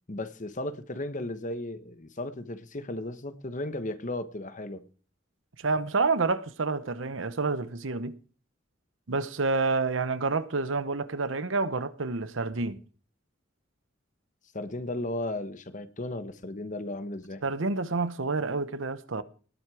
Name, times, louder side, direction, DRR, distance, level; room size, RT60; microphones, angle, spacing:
voice 1, 0.1-4.8 14.5-17.4, left 1 dB, 40° left, 1.2 m, -35 dB
voice 2, 5.6-8.2 9.1-12.8 17.4-19.2, right 3 dB, 80° right, 0.9 m, -28 dB
19.0 x 7.8 x 4.9 m
head